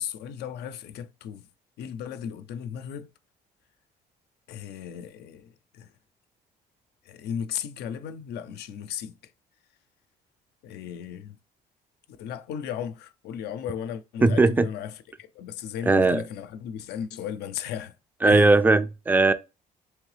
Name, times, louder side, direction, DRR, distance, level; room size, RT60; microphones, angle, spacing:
voice 1, 0.0-1.5 1.8-3.1 4.5-5.9 7.0-9.2 10.6-11.4 12.1-18.0 18.3-18.5, left 9 dB, 75° left, 0.5 m, -36 dB
voice 2, 14.2-14.7 15.9-16.2 18.2-19.3, right 3 dB, 10° right, 0.4 m, -18 dB
3.7 x 3.3 x 3.2 m
cardioid pair, 110°, 17 cm